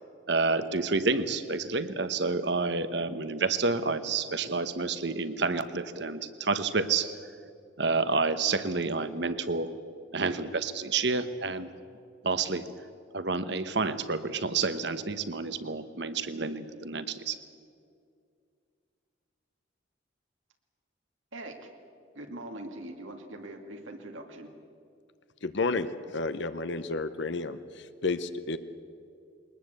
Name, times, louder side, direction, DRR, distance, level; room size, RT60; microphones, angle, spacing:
voice 1, 0.3-7.2 7.8-9.7 10.1-11.7 12.2-12.7 13.1-17.4, right 4 dB, 60° right, 12 dB, 1.1 m, -29 dB
voice 2, 21.3-21.7 22.1-24.5, right 1 dB, 85° right, 3 dB, 2.4 m, -42 dB
voice 3, 25.4-28.6, left 3 dB, 65° left, 12 dB, 0.8 m, -31 dB
21.5 x 20.0 x 8.1 m, 2.3 s
head